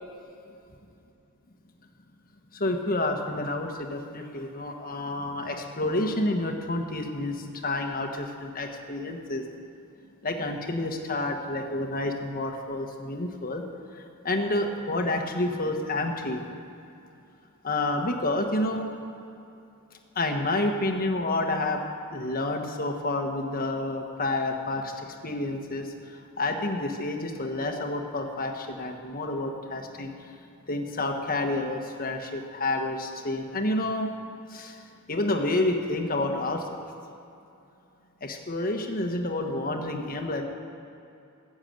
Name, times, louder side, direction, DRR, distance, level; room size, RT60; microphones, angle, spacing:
voice 1, 2.5-9.4 10.2-13.6 13.9-16.4 17.6-18.9 20.1-21.8 22.1-30.3 30.7-34.1 34.5-36.7 38.2-40.4, left 2 dB, 40° left, 3 dB, 1.4 m, -29 dB
15.0 x 7.1 x 8.9 m, 2.7 s
head